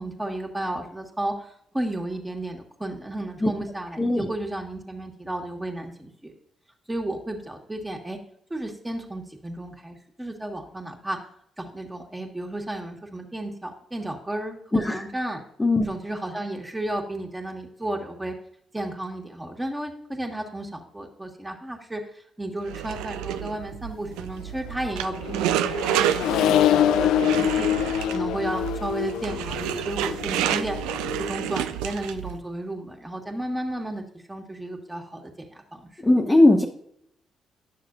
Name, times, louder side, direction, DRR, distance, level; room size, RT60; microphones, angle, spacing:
voice 1, 0.0-6.3 6.9-8.2 8.5-11.2 11.6-15.4 15.8-18.3 18.7-27.7 28.1-30.8 31.2-36.0, right 1 dB, 15° right, 2 dB, 1.7 m, -33 dB
voice 2, 4.0-4.3 14.7-15.0 15.6-15.9 36.0-36.7, left 2 dB, 20° left, 0 dB, 1.0 m, -19 dB
sound 1, 22.7-32.4, right 11 dB, 75° right, 0.3 m, -29 dB
Accelerating revving vroom, 24.8-31.5, left 10 dB, 70° left, 0.3 m, -25 dB
10.5 x 6.5 x 2.6 m, 0.70 s
hypercardioid pair, 40°, 0 cm